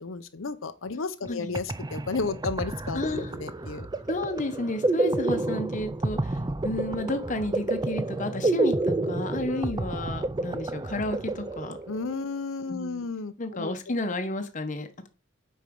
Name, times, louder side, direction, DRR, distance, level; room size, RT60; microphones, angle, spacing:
voice 1, 0.0-3.9 9.5-9.7 11.9-13.7, left 4 dB, 80° left, 0.7 m, -33 dB
sound 1, 1.3-1.4 1.5-12.1, right 2 dB, 20° right, 0.4 m, -29 dB
voice 2, 2.9-3.3 4.1-11.8 12.7-13.0 13.4-15.1, left 2 dB, 40° left, 1.1 m, -32 dB
8.3 x 4.5 x 5.3 m
head